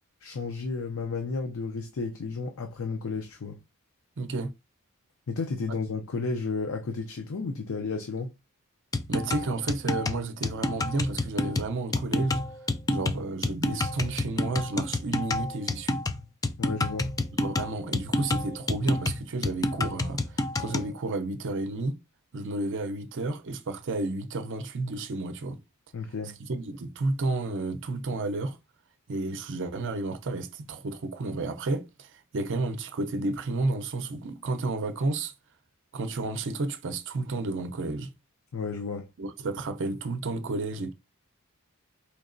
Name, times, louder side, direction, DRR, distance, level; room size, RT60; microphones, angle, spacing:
voice 1, 0.2-3.6 5.3-8.3 16.6-17.1 25.9-26.4 38.5-39.1, left 4 dB, 65° left, 0.5 m, -32 dB
voice 2, 4.2-4.5 9.1-12.4 12.9-16.0 17.4-22.0 22.3-25.6 26.5-28.6 29.1-35.3 35.9-38.1 39.2-40.9, right 2 dB, 60° right, 0.6 m, -31 dB
sound 1, 8.9-20.9, left 2 dB, 15° left, 0.3 m, -29 dB
4.5 x 2.8 x 2.6 m
head